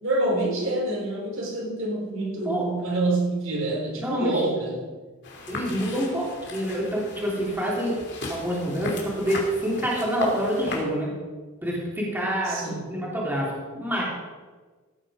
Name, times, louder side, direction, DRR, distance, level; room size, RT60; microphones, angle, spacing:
voice 1, 0.0-4.9 12.4-13.0, right 2 dB, 65° right, -2 dB, 4.0 m, -27 dB
voice 2, 3.9-4.4 5.5-8.0 8.3-11.1 11.6-14.0, equal, 10° right, -5 dB, 3.2 m, -27 dB
sound 1, 5.2-10.8, left 2 dB, 55° left, 2.8 m, -36 dB
16.0 x 9.0 x 5.0 m, 1.4 s
head